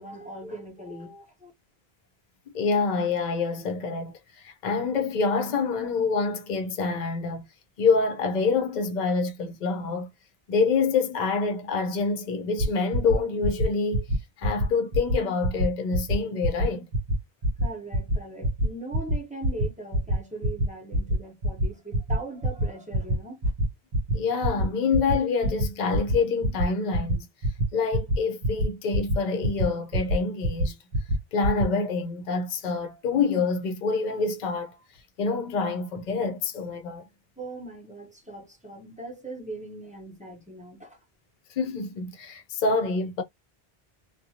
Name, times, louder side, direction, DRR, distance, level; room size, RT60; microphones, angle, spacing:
voice 1, 0.0-1.5 17.6-23.5 37.4-41.0, right 2 dB, 10° right, 0.9 m, -40 dB
voice 2, 2.5-7.4 7.8-10.1 10.5-14.0 14.4-16.9 24.1-27.3 27.7-30.8 31.3-34.8 35.2-37.1 41.5-43.2, left 4 dB, 50° left, 0.7 m, -26 dB
sound 1, 12.6-12.7 12.9-13.2 13.4-13.7 13.9-14.2 14.4-14.7 14.9-15.2 15.4-15.7 15.9-16.2 16.4-16.7 16.9-17.2 17.4-17.7 17.9-18.2 18.4-18.7 18.9-19.2 19.4-19.7 19.9-20.2 20.4-20.7 20.9-21.2 21.4-21.7 21.9-22.2 22.4-22.7 22.9-23.2 23.4-23.6 23.9-24.1 24.4-24.7 24.9-25.2 25.4-25.7 25.9-26.2 26.4-26.7 26.9-27.1 27.4-27.6 27.9-28.2 28.4-28.7 28.9-29.2 29.4-29.7 29.9-30.2 30.4-30.7 30.9-31.2 31.4-31.6, equal, 60° right, 0.9 m, -24 dB
2.6 x 2.2 x 2.7 m
omnidirectional pair, 1.0 m